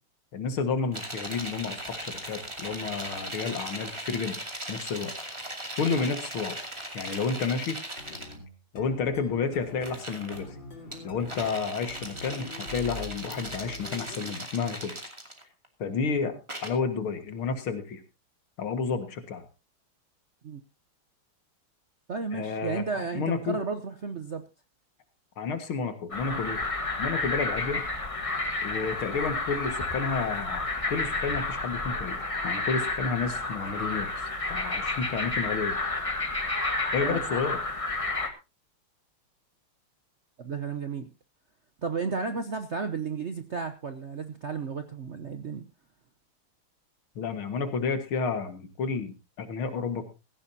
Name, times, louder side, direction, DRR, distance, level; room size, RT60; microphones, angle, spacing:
voice 1, 0.3-4.4 4.7-5.1 5.8-6.5 6.9-7.8 8.7-10.5 11.0-14.9 15.8-16.4 16.6-18.0 18.6-19.5 22.3-23.6 25.4-26.6 27.0-27.8 28.6-34.1 34.5-35.8 36.9-37.6 47.2-50.0, left 5 dB, 80° left, 9 dB, 2.5 m, -31 dB
sound 1, 0.9-8.3 9.7-10.4 10.9-15.7 16.5-16.7, right 1 dB, 15° right, 2.4 m, -38 dB
sound 2, 8.0-14.4, left 2 dB, 60° left, 4.4 m, -44 dB
voice 2, 22.1-24.4 37.0-37.2 40.4-41.1 41.8-45.7, right 5 dB, 55° right, 9 dB, 0.7 m, -33 dB
sound 3, 26.1-38.3, left 2 dB, 20° left, 1.2 m, -30 dB
16.5 x 15.0 x 2.8 m, 0.27 s
omnidirectional pair, 2.3 m